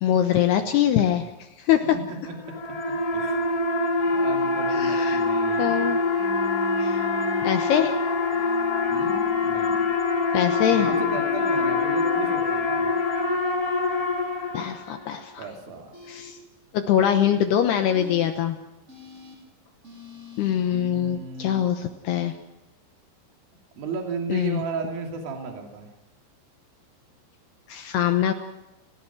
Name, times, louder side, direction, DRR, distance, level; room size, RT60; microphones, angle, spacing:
voice 1, 0.0-2.0 4.8-5.2 5.6-6.0 6.8-7.0 7.4-8.0 10.3-10.9 14.5-15.5 16.1-16.4 16.7-18.6 20.4-22.3 24.3-24.6 27.7-28.3, left 10 dB, 75° left, 6 dB, 2.8 m, -23 dB
voice 2, 1.9-2.5 3.1-3.5 4.0-5.7 8.9-9.8 10.7-13.0 15.4-15.9 20.6-21.7 23.8-25.9, right 4 dB, 55° right, 2 dB, 4.1 m, -35 dB
sound 1, 2.3-15.1, left 3 dB, 15° left, 1.4 m, -25 dB
sound 2, 4.0-9.2, left 1 dB, 50° left, 4.2 m, -39 dB
sound 3, 6.2-7.4 8.3-9.8 10.8-12.4 13.1-14.5 15.9-16.3 17.0-17.3 17.9-18.3 18.9-19.4 19.8-20.5, left 5 dB, 15° right, 6.5 m, -42 dB
29.5 x 16.5 x 6.1 m, 0.99 s
omnidirectional pair, 5.3 m